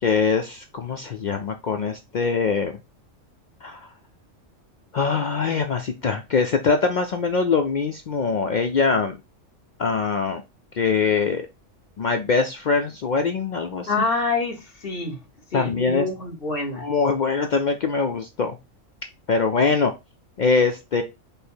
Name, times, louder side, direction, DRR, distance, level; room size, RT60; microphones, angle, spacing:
voice 1, 0.0-2.8 3.6-3.9 4.9-9.2 9.8-10.4 10.7-11.5 12.0-13.9 15.5-16.1 16.8-18.6 19.3-19.9 20.4-21.0, left 5 dB, 85° left, 0.4 m, -23 dB
voice 2, 13.9-15.2 15.5-16.9, left 3 dB, 45° left, 1.3 m, -26 dB
5.2 x 2.1 x 4.3 m
omnidirectional pair, 1.4 m